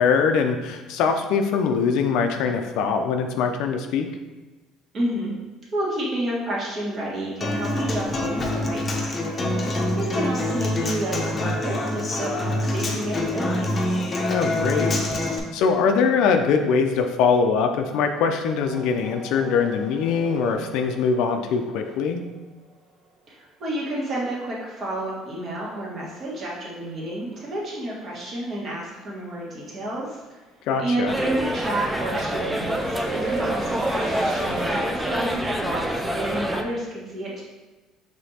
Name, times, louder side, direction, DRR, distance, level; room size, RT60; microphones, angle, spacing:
voice 1, 0.0-4.1 14.3-15.0 15.5-22.2 30.7-31.1, left 5 dB, 75° left, 5 dB, 0.4 m, -22 dB
voice 2, 4.9-5.3 5.7-9.3 10.0-13.7 23.3-30.4 30.8-37.4, right 1 dB, 40° right, -4 dB, 1.5 m, -30 dB
Human voice / Acoustic guitar, 7.4-15.4, left 1 dB, 30° left, 0.7 m, -25 dB
sound 1, 18.6-22.7 25.1-25.2 26.5-26.8 27.1-34.9, right 2 dB, 65° right, 1.1 m, -38 dB
sound 2, 31.1-36.6, equal, 5° right, 0.4 m, -26 dB
5.0 x 3.4 x 2.8 m, 1.2 s
cardioid pair, 110°, 0 cm